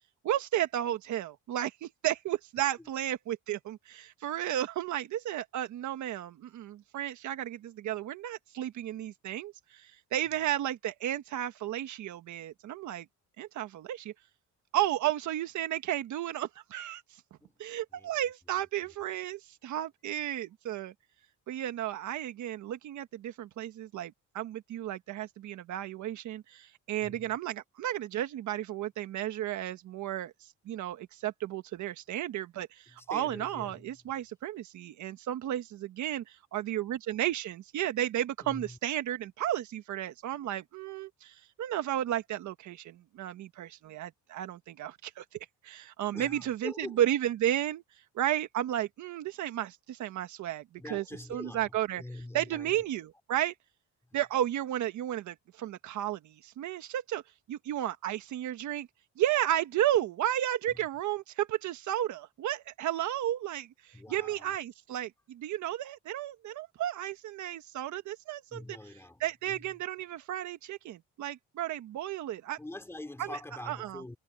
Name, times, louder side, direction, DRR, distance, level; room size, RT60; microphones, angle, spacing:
voice 1, 0.2-13.1 13.4-14.1 14.7-17.0 17.6-20.9 21.5-30.3 30.6-45.2 45.6-47.8 48.1-50.6 50.9-51.0 51.3-52.0 52.3-53.5 54.1-57.2 57.5-58.9 59.2-68.8 69.2-72.6 73.2-73.3 73.7-74.0, right 12 dB, 70° right, 1.4 m, -33 dB
voice 2, 17.9-18.3 18.8-18.9 27.0-27.4 32.9-34.1 38.4-38.8 46.1-47.0 50.8-52.9 54.0-54.2 60.7-60.9 63.9-64.6 68.5-69.8 72.6-74.2, left 1 dB, 10° left, 3.0 m, -45 dB
cardioid pair, 155°, 30 cm